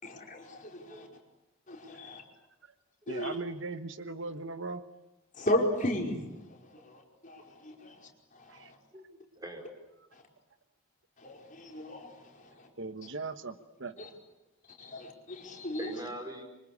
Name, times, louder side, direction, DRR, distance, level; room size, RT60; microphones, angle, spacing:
voice 1, 0.0-1.1 1.7-2.2 3.1-3.4 5.3-6.4 6.8-8.7 10.1-10.2 11.2-12.7 14.0-14.1 14.8-15.9, left 1 dB, 40° left, 2 dB, 5.1 m, -35 dB
voice 2, 3.1-4.8 8.5-8.7 12.8-14.0, right 3 dB, 65° right, 10 dB, 1.3 m, -39 dB
voice 3, 8.9-9.7 15.8-16.4, right 1 dB, 20° right, 3 dB, 5.4 m, -42 dB
27.5 x 25.0 x 8.5 m, 0.94 s
head